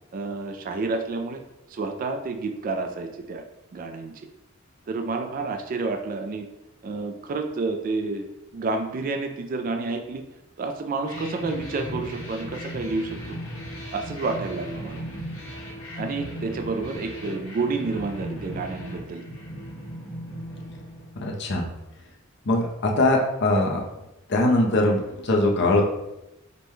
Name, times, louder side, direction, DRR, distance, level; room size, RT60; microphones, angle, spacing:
voice 1, 0.1-1.4 1.7-3.4 3.7-4.1 4.9-6.5 6.8-8.3 8.5-10.2 10.6-13.2 13.9-15.0 15.9-19.2, right 3 dB, 45° right, 5 dB, 0.3 m, -29 dB
sound 1, 11.1-21.6, equal, 85° left, 1.0 m, -37 dB
voice 2, 21.2-21.7 22.5-23.8 24.3-25.8, left 2 dB, 60° left, 0 dB, 0.7 m, -21 dB
5.2 x 2.2 x 3.0 m, 0.93 s
head